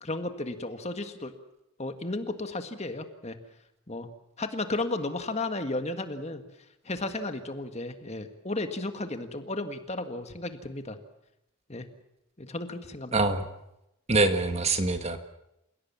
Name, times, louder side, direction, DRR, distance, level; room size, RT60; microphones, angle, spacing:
voice 1, 0.0-1.3 1.8-3.4 3.9-4.1 4.4-6.4 6.9-11.0 11.7-11.9 12.4-13.2, left 2 dB, 30° left, 8 dB, 1.8 m, -34 dB
voice 2, 13.1-13.4 14.1-15.2, right 3 dB, 30° right, 8 dB, 1.5 m, -24 dB
29.0 x 17.0 x 7.3 m, 0.86 s
head